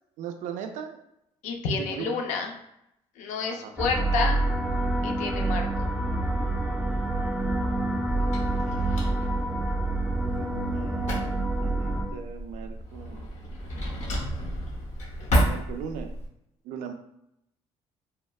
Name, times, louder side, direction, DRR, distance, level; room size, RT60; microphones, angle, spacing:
voice 1, 0.2-1.0 1.8-2.2 3.5-3.7 10.2-13.3 15.4-16.1 16.6-16.9, right 7 dB, 90° right, 6 dB, 0.4 m, -38 dB
voice 2, 1.4-2.5 3.2-4.4 5.0-5.9, left 4 dB, 85° left, 2 dB, 0.5 m, -30 dB
sound 1, 3.8-12.1, right 2 dB, 5° right, 0.4 m, -27 dB
Drawer open or close, 6.9-16.3, equal, 65° left, 0.9 m, -32 dB
3.4 x 2.1 x 2.3 m, 0.80 s
cardioid pair, 100°, 12 cm